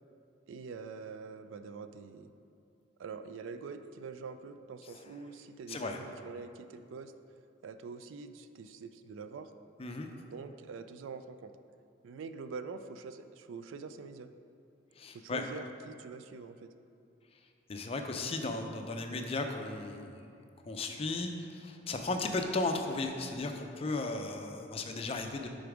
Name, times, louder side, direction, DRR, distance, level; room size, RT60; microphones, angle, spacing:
voice 1, 0.5-2.3 3.0-7.1 7.6-9.5 10.3-11.5 12.0-14.3 15.1-16.7, right 5 dB, 80° right, 10 dB, 0.3 m, -45 dB
voice 2, 5.7-6.0 9.8-10.1 15.0-15.4 17.7-20.3 20.7-25.5, left 2 dB, 30° left, 5 dB, 0.4 m, -35 dB
6.8 x 3.9 x 4.9 m, 2.6 s
head